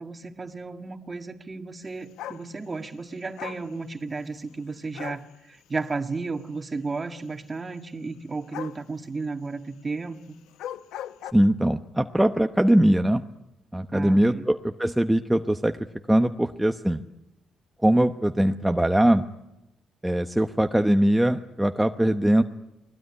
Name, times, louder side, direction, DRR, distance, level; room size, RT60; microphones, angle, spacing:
voice 1, 0.0-10.2 13.9-14.5, right 3 dB, 25° right, 8 dB, 1.9 m, -33 dB
sound 1, 2.2-2.5 3.4-3.7 4.9-5.3 8.5-8.8 10.5-11.3, left 12 dB, 85° left, 0.9 m, -37 dB
voice 2, 11.3-13.2 13.7-15.7 16.1-17.0 17.8-19.2 20.0-22.4, right 1 dB, 5° right, 6 dB, 1.0 m, -21 dB
29.0 x 20.5 x 9.9 m, 0.92 s
cardioid pair, 90°, 0 cm